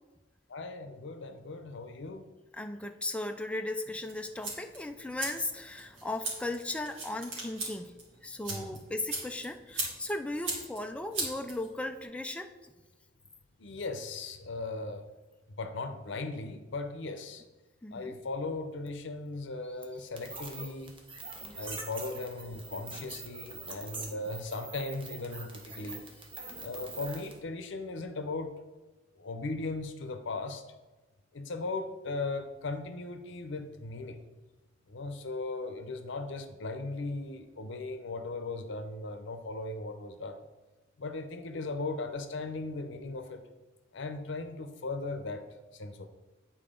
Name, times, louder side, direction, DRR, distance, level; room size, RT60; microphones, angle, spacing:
voice 1, 0.5-2.3 8.5-8.8 13.6-15.0 15.6-17.4 17.9-20.9 21.5-26.1 26.6-28.5 29.2-30.6 31.3-34.2 34.9-40.4 41.0-43.4 43.9-45.4 45.7-46.1, left 3 dB, 70° left, 8 dB, 0.7 m, -37 dB
voice 2, 2.5-7.9 8.2-12.7 17.8-18.2 21.4-21.8, left 2 dB, 5° left, 5 dB, 0.4 m, -37 dB
sound 1, 4.1-12.0, right 2 dB, 85° right, 2.2 m, -40 dB
sound 2, 20.2-27.4, right 3 dB, 25° right, 1.0 m, -44 dB
8.9 x 4.3 x 3.8 m, 1.2 s
head